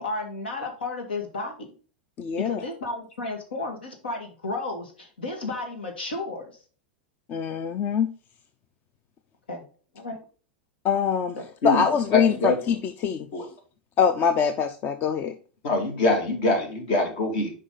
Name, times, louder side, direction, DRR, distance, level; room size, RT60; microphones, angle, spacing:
voice 1, 0.0-1.7 2.4-6.5 9.5-9.6 9.9-10.2, left 2 dB, 85° left, 3 dB, 1.9 m, -33 dB
voice 2, 2.2-2.6 7.3-8.1 10.8-11.4 11.6-13.3 14.0-15.3, left 7 dB, 35° left, 10 dB, 0.6 m, -23 dB
voice 3, 12.1-12.6 13.3-13.4 15.6-17.5, left 2 dB, 60° left, 4 dB, 2.6 m, -24 dB
6.2 x 5.1 x 3.9 m, 0.39 s
hypercardioid pair, 105°, 5 cm